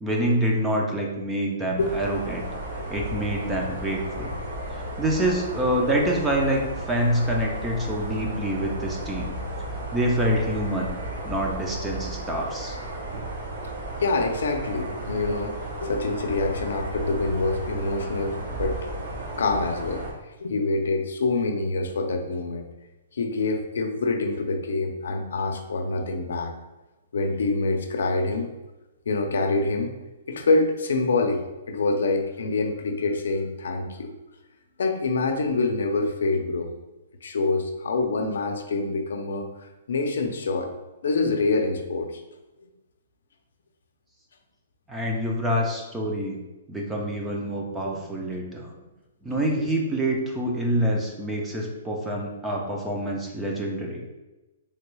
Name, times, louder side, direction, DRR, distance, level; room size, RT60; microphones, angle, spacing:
voice 1, 0.0-2.4 2.9-4.3 4.8-9.3 9.9-10.9 11.2-12.8 44.9-46.4 46.7-48.7 49.2-54.0, right 1 dB, 5° right, -1 dB, 0.3 m, -26 dB
sound 1, 1.8-20.1, right 1 dB, 60° right, 0.9 m, -34 dB
voice 2, 14.0-18.8 19.4-20.0 20.4-22.7 23.1-26.5 27.1-28.5 29.1-29.9 30.3-34.1 34.8-36.7 37.2-40.7 41.0-42.2 49.5-49.7, left 3 dB, 80° left, 5 dB, 0.5 m, -26 dB
3.3 x 2.2 x 3.1 m, 1.1 s
hypercardioid pair, 175°, 0 cm